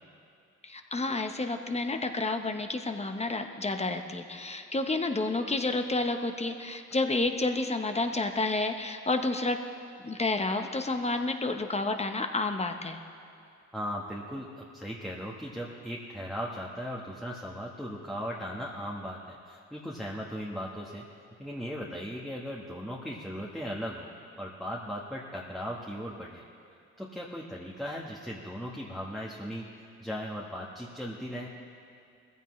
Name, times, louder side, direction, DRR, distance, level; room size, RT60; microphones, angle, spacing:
voice 1, 0.6-9.6 10.0-13.0, left 2 dB, 20° left, 6 dB, 0.9 m, -30 dB
voice 2, 13.7-21.0 21.4-24.1 24.4-26.4 27.0-29.6 30.0-31.5, equal, ahead, -3 dB, 1.3 m, -37 dB
20.0 x 15.0 x 3.2 m, 2.4 s
cardioid pair, 90°, 30 cm